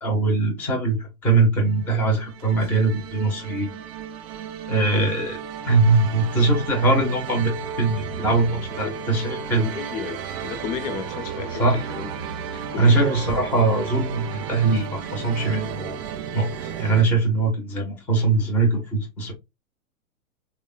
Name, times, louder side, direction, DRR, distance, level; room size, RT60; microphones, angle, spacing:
voice 1, 0.0-3.7 4.7-5.4 5.7-9.8 11.6-11.8 12.8-16.0 16.3-19.3, right 3 dB, 5° left, 0.4 m, -21 dB
sound 1, 1.6-17.0, right 7 dB, 45° right, 0.5 m, -34 dB
voice 2, 9.6-11.6 12.0-12.1 12.7-13.1, left 7 dB, 65° left, 0.6 m, -33 dB
3.2 x 2.1 x 2.3 m
hypercardioid pair, 120°, 43 cm